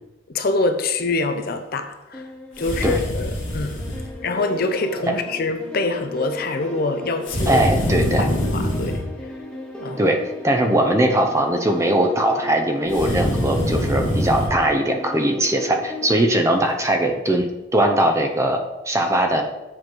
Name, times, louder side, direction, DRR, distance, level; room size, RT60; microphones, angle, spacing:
voice 1, 0.3-2.3 2.6-4.0 4.2-7.6 8.0-9.0 9.8-10.1, left 3 dB, 45° left, 8 dB, 0.5 m, -25 dB
sound 1, 2.1-16.2, left 2 dB, 5° left, 1.0 m, -35 dB
sound 2, 2.6-4.1 7.3-9.1 12.9-14.5, equal, 65° left, 1.9 m, -24 dB
voice 2, 7.5-8.3 10.0-10.2 10.4-18.6 18.9-19.4, right 1 dB, 15° right, 4 dB, 0.6 m, -20 dB
7.6 x 3.9 x 4.5 m, 1.0 s
head